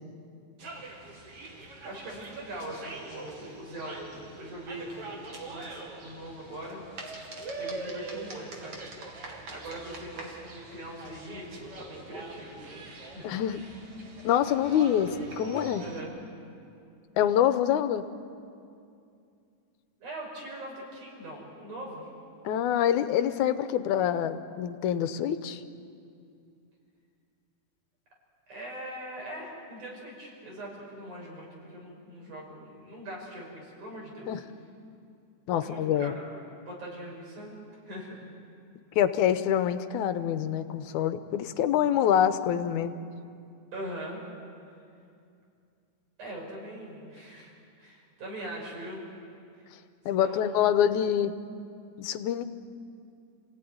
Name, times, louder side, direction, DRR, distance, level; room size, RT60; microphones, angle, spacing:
sound 1, 0.6-16.0, right 3 dB, 50° right, 3.4 m, -43 dB
voice 1, 1.8-6.8 7.6-8.9 9.5-13.3 15.8-16.1 20.0-22.1 28.5-34.4 35.6-36.1 36.6-37.6 37.9-38.3 43.7-44.2 46.2-47.5 47.8-49.1 50.1-50.6, right 1 dB, 90° right, -2 dB, 7.1 m, -41 dB
voice 2, 13.2-13.6 14.2-15.8 17.2-18.0 22.4-25.6 34.3-34.4 35.5-36.2 39.0-43.0 50.1-51.3 52.0-52.4, left 10 dB, 85° left, 11 dB, 2.3 m, -26 dB
28.0 x 17.0 x 9.5 m, 2.5 s
omnidirectional pair, 3.4 m